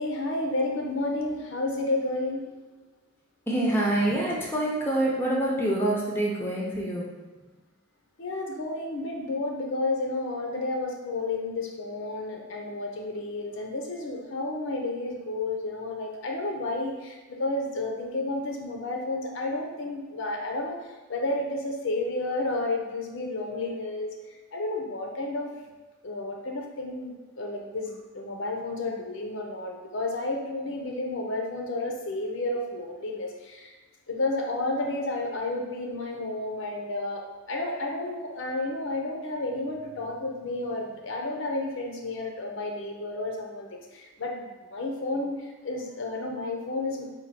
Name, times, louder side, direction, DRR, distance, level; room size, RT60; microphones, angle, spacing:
voice 1, 0.0-2.7 8.2-20.8 21.1-24.1 24.5-25.6 26.0-33.7 34.1-47.1, left 2 dB, 60° left, 1 dB, 0.6 m, -31 dB
voice 2, 3.5-7.1, right 1 dB, 10° left, -3 dB, 0.5 m, -26 dB
4.4 x 2.3 x 4.1 m, 1.3 s
head